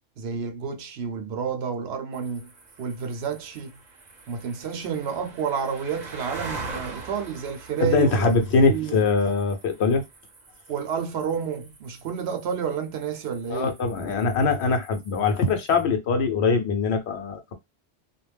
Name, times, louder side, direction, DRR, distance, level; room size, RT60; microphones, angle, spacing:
voice 1, 0.2-2.5 2.8-3.8 4.3-8.3 8.7-9.0 10.7-13.7, right 7 dB, 75° right, 0.9 m, -30 dB
sound 1, 2.1-15.8, right 3 dB, 45° right, 0.7 m, -43 dB
voice 2, 7.8-10.0 13.5-17.5, left 4 dB, 80° left, 1.0 m, -22 dB
2.4 x 2.1 x 3.2 m
omnidirectional pair, 1.1 m